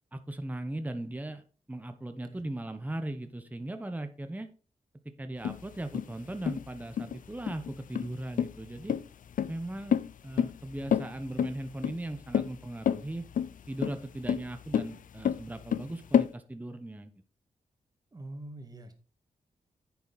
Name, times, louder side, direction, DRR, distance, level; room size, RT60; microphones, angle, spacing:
voice 1, 0.1-4.5 5.2-9.0 9.5-13.2 13.7-17.1, right 1 dB, 10° right, 8 dB, 1.0 m, -38 dB
sound 1, 5.4-16.3, left 8 dB, 75° left, 0.5 m, -30 dB
voice 2, 18.1-18.9, right 1 dB, 25° right, 5 dB, 2.0 m, -44 dB
10.0 x 6.9 x 4.1 m, 0.36 s
wide cardioid pair, 100°, 14 cm